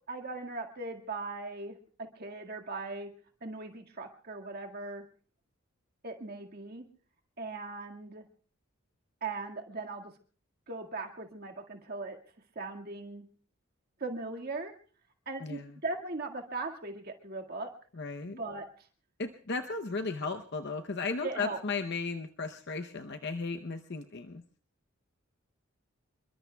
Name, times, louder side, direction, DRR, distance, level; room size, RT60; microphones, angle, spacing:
voice 1, 0.1-1.8 2.2-3.1 3.4-5.0 6.0-6.8 7.4-8.2 9.2-10.1 10.7-12.2 12.6-13.2 14.0-14.7 15.3-17.7 18.2-18.7 21.2-21.6, right 3 dB, 45° right, 3 dB, 1.9 m, -39 dB
voice 2, 18.0-18.4 19.2-24.4, left 4 dB, 55° left, 6 dB, 0.8 m, -35 dB
27.5 x 22.5 x 2.3 m, 0.40 s
head